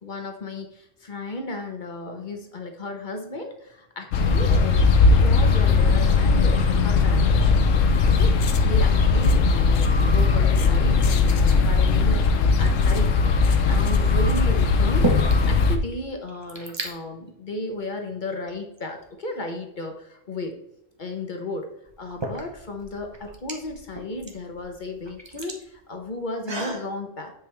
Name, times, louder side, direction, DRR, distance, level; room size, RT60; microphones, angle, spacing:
voice 1, 0.0-7.7 8.0-8.3 8.6-13.2 13.6-15.1 15.5-20.5 21.0-21.7 22.0-27.3, left 2 dB, 40° left, 4 dB, 1.2 m, -34 dB
sound 1, 4.1-15.8, left 4 dB, 80° left, 1.1 m, -19 dB
sound 2, 13.3-13.8 14.5-15.6 15.9-16.0 16.2-16.9 17.7-17.9 18.5-19.4 21.1-21.2 21.9-26.9, right 2 dB, 20° right, 1.0 m, -33 dB
9.4 x 5.2 x 3.5 m, 0.80 s
omnidirectional pair, 1.3 m